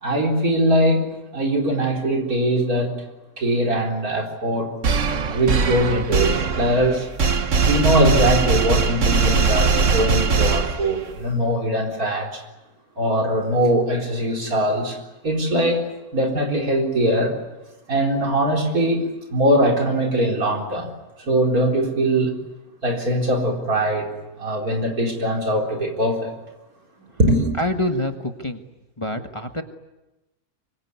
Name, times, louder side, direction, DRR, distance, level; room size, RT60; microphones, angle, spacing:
voice 1, 0.0-1.1 1.3-3.0 3.4-4.7 5.3-7.1 7.5-12.4 13.0-15.0 15.2-17.4 17.9-19.0 19.3-20.9 21.2-22.3 22.8-24.1 24.4-26.3 27.2-27.5, right 1 dB, 85° right, 2 dB, 4.6 m, -21 dB
sound 1, 4.8-11.2, right 5 dB, 60° right, 1.6 m, -20 dB
voice 2, 27.6-28.6 29.0-29.6, left 1 dB, 20° left, 5 dB, 1.5 m, -26 dB
25.0 x 23.0 x 9.7 m, 1.0 s
omnidirectional pair, 1.5 m